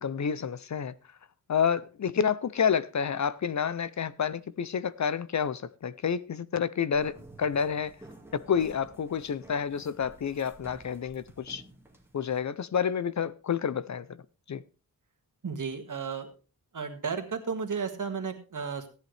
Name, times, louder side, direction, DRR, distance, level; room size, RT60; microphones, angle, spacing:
voice 1, 0.0-0.9 1.5-7.9 8.3-11.6 12.1-14.0 14.5-14.6, left 7 dB, 50° left, 0.5 m, -29 dB
sound 1, 6.9-12.4, right 1 dB, 5° right, 1.9 m, -52 dB
voice 2, 15.4-16.3 16.7-18.9, right 5 dB, 60° right, 1.8 m, -33 dB
14.5 x 10.5 x 3.3 m
wide cardioid pair, 120°, 36 cm